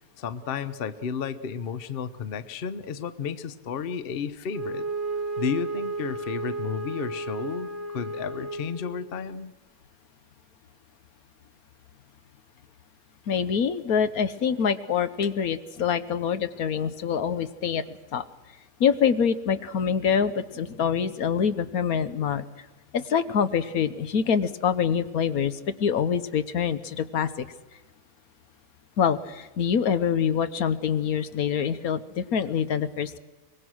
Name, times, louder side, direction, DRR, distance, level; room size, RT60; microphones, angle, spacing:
voice 1, 0.2-4.9 5.4-9.5, left 6 dB, 45° left, 14 dB, 0.9 m, -32 dB
Wind instrument woodwind instrument, 4.5-9.1, right 2 dB, 90° right, 2.1 m, -33 dB
voice 2, 13.3-18.2 18.8-22.4 22.9-27.4 29.0-33.2, left 7 dB, 70° left, 12 dB, 1.3 m, -25 dB
24.0 x 21.0 x 6.3 m, 1.1 s
omnidirectional pair, 1.7 m